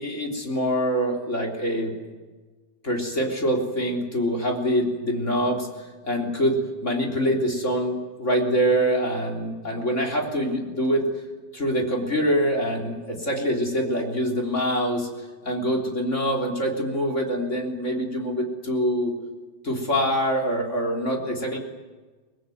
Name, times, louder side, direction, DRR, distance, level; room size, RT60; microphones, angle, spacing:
voice 1, 0.0-1.9 2.8-5.7 6.0-11.0 11.5-15.1 15.4-19.1 19.6-21.6, equal, 20° left, 1 dB, 3.2 m, -25 dB
24.0 x 20.0 x 9.3 m, 1.3 s
omnidirectional pair, 4.7 m